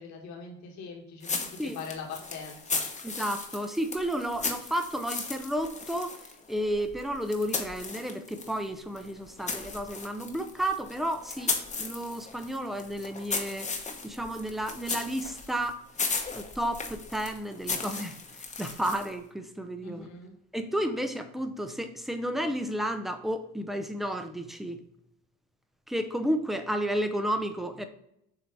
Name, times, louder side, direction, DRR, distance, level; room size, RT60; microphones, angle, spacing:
voice 1, 0.0-2.8 19.8-20.3, left 5 dB, 65° left, 0 dB, 1.7 m, -42 dB
sound 1, 1.2-8.6 8.9-19.2, left 4 dB, 25° left, 1.1 m, -36 dB
voice 2, 3.0-6.2 6.5-13.7 14.0-15.8 16.3-20.1 20.5-24.8 25.9-27.9, equal, ahead, 7 dB, 0.7 m, -32 dB
7.5 x 2.9 x 4.7 m, 0.78 s
cardioid pair, 100°, 30 cm